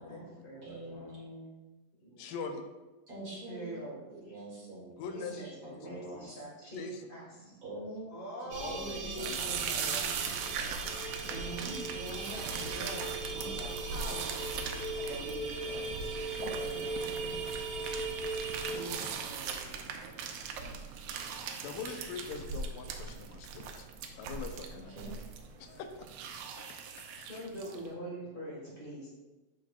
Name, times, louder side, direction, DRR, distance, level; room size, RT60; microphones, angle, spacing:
voice 1, 0.0-1.2 2.0-2.4 3.5-4.3 5.1-7.6 8.1-10.4 11.3-14.2 14.9-17.3 18.6-20.2 27.3-29.1, right 1 dB, 65° left, -6 dB, 0.5 m, -45 dB
voice 2, 0.6-1.6 3.1-3.9 4.1-5.2 5.6-6.4 7.6-8.1 8.4-10.1 11.2-13.0 13.3-14.3 16.4-17.7 18.6-19.2 24.7-25.1, right 1 dB, 40° right, -5 dB, 2.5 m, -46 dB
voice 3, 2.2-2.6 5.0-5.4 6.8-7.0 8.6-9.0 9.3-9.4 13.7-13.8 21.6-23.9 24.2-24.9 25.6-26.1 26.5-27.3, left 5 dB, 90° left, 6 dB, 2.4 m, -43 dB
sound 1, 8.5-18.7, right 3 dB, 65° right, 2.0 m, -42 dB
sound 2, 9.1-27.9, right 6 dB, 90° right, 2.3 m, -40 dB
sound 3, 9.8-18.9, right 2 dB, 45° left, 0.8 m, -40 dB
13.5 x 5.1 x 2.3 m, 1.1 s
omnidirectional pair, 3.9 m